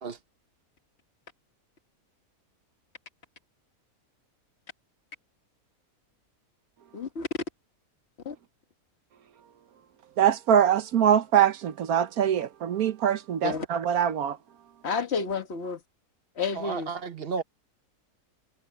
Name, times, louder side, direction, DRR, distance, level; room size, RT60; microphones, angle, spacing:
voice 1, 6.9-7.3 8.3-8.4 13.4-13.7 14.8-15.8 16.4-16.9, left 5 dB, 45° left, 1.7 m, -30 dB
voice 2, 10.2-14.4, right 9 dB, 75° right, 1.4 m, -23 dB
voice 3, 16.5-17.4, right 5 dB, 45° right, 1.1 m, -33 dB
omnidirectional pair, 1.6 m